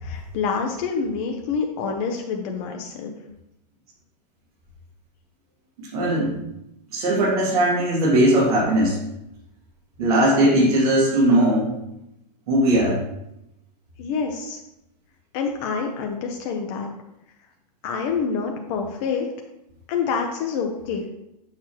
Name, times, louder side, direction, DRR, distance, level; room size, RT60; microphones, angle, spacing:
voice 1, 0.0-3.2 14.0-14.6 15.3-16.9 17.8-19.3 19.9-21.0, left 5 dB, 45° left, 2 dB, 0.9 m, -27 dB
voice 2, 5.8-6.4 6.9-9.0 10.0-11.7 12.5-13.0, right 1 dB, 60° right, -5 dB, 2.4 m, -19 dB
7.0 x 6.7 x 3.0 m, 0.86 s
hypercardioid pair, 105°, 21 cm